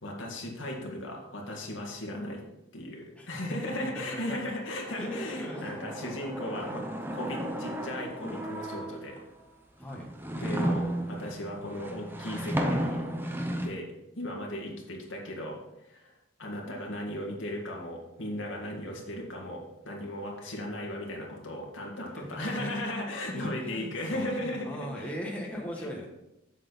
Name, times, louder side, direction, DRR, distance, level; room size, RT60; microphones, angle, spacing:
voice 1, 0.0-2.4 2.7-9.2 10.4-13.0 13.6-25.1 25.8-26.1, left 1 dB, 85° left, 0 dB, 2.1 m, -36 dB
voice 2, 3.2-4.4 4.9-5.7 5.9-6.0 9.8-10.1 22.2-22.7 23.3-26.1, equal, 5° left, -2 dB, 1.3 m, -39 dB
sound 1, 4.9-9.2 9.8-13.7, right 1 dB, 10° right, 0.7 m, -34 dB
7.7 x 7.5 x 4.1 m, 0.90 s
head